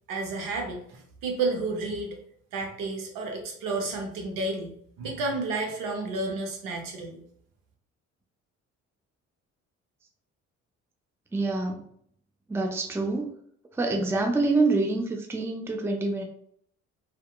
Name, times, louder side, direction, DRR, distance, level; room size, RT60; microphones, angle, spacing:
voice 1, 0.1-2.2 2.5-7.2, right 3 dB, 70° right, 2 dB, 0.7 m, -31 dB
voice 2, 11.3-11.8 12.5-13.3 13.7-16.2, right 3 dB, 5° right, 3 dB, 0.4 m, -26 dB
2.8 x 2.1 x 2.2 m, 0.64 s
hypercardioid pair, 50°, 34 cm